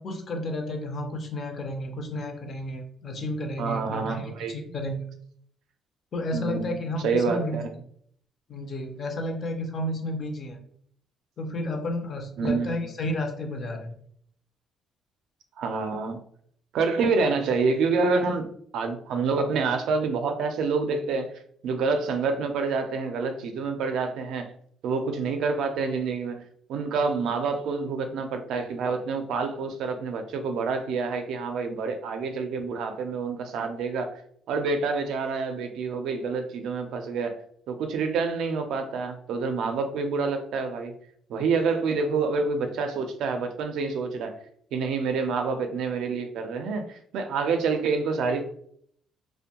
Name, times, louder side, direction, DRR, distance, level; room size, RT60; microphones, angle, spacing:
voice 1, 0.0-5.1 6.1-7.6 8.5-10.6 11.4-13.9, left 1 dB, 35° left, 4 dB, 0.4 m, -32 dB
voice 2, 3.6-4.6 6.3-7.7 12.4-12.9 15.6-16.2 16.7-18.5 18.7-21.3 21.6-24.5 24.8-26.4 26.7-34.1 34.5-37.4 37.7-40.9 41.3-44.3 44.7-48.5, right 4 dB, 65° right, 6 dB, 0.4 m, -27 dB
2.5 x 2.1 x 2.8 m, 0.64 s
cardioid pair, 175°, 0 cm